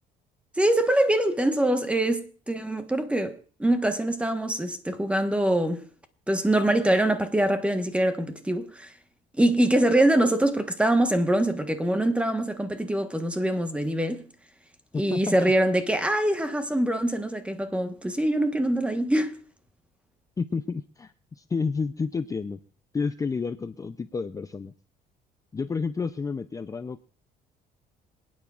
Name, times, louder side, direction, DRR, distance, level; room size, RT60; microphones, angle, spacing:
voice 1, 0.6-5.8 6.3-8.9 9.4-14.2 14.9-19.3, right 1 dB, 5° right, 1.2 m, -24 dB
voice 2, 14.9-15.5 20.4-22.6 22.9-24.7 25.5-27.0, left 5 dB, 20° left, 0.5 m, -30 dB
27.0 x 9.4 x 2.4 m
cardioid pair, 110°, 17 cm